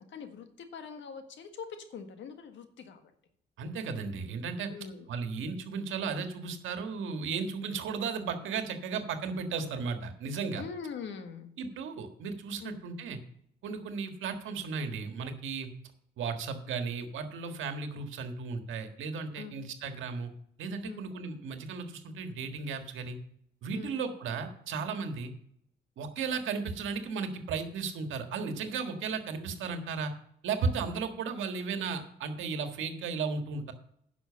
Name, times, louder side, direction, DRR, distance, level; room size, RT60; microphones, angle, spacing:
voice 1, 0.0-3.1 4.7-5.1 10.6-11.5 12.6-12.8 19.3-19.5 20.8-21.0 23.7-24.0, left 6 dB, 70° left, 7 dB, 1.6 m, -43 dB
voice 2, 3.6-4.7 5.1-10.6 11.6-13.2 13.6-15.7 16.2-20.3 20.6-23.2 23.6-25.3 26.0-30.1 30.4-33.7, right 5 dB, 80° right, 6 dB, 1.6 m, -35 dB
10.5 x 6.1 x 6.8 m, 0.69 s
cardioid pair, 90°, 20 cm